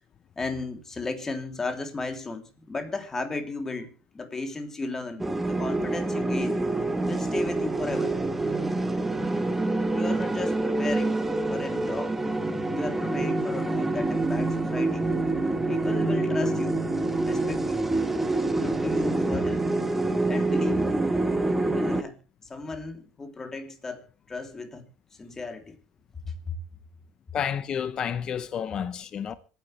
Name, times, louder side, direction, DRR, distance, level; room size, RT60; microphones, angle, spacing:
voice 1, 0.4-6.6 7.1-8.2 9.9-11.1 11.5-12.2 12.7-15.1 15.7-16.9 17.2-17.9 18.5-19.6 20.2-20.9 21.6-24.8 25.1-25.8 26.3-26.6, left 3 dB, 20° left, 3.1 m, -35 dB
sound 1, 5.2-22.0, right 2 dB, 10° right, 1.7 m, -26 dB
voice 2, 27.3-29.3, left 8 dB, 40° left, 0.8 m, -30 dB
26.0 x 10.5 x 3.3 m
supercardioid pair, 100°, 2 cm